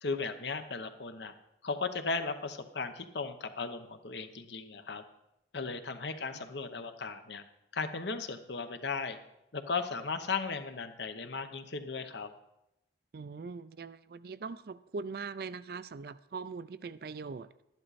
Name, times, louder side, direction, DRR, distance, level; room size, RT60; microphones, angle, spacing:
voice 1, 0.0-1.3 1.6-5.0 5.5-7.4 7.7-9.2 9.5-12.3, left 4 dB, 70° left, 8 dB, 0.9 m, -36 dB
voice 2, 13.1-17.5, right 4 dB, 55° right, 15 dB, 0.4 m, -41 dB
12.0 x 10.5 x 4.1 m, 0.87 s
head